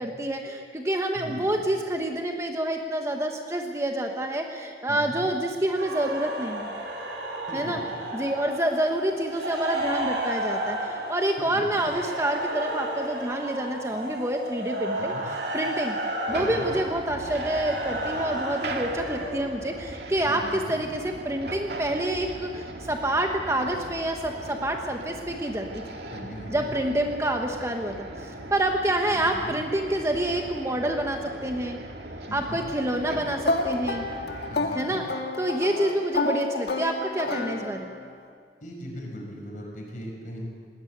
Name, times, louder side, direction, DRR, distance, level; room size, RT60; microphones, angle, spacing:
voice 1, 0.0-6.7 7.5-7.8 8.1-15.1 15.5-25.8 26.5-31.8 32.3-34.0 34.7-35.0 35.4-37.9, right 1 dB, 15° right, 3 dB, 1.2 m, -28 dB
voice 2, 1.1-1.7 4.9-5.2 7.5-8.0 11.4-12.0 15.0-15.2 16.4-16.7 20.3-20.8 26.1-26.7 29.1-29.6 32.3-32.6 34.5-35.0 38.6-40.5, equal, 45° left, 0 dB, 5.4 m, -39 dB
sound 1, 5.7-19.3, right 1 dB, 85° right, 6.8 m, -32 dB
sound 2, 16.3-34.5, right 1 dB, 65° right, 2.1 m, -39 dB
sound 3, 33.4-38.1, left 2 dB, 65° left, 2.0 m, -29 dB
20.0 x 18.5 x 8.0 m, 2.1 s
head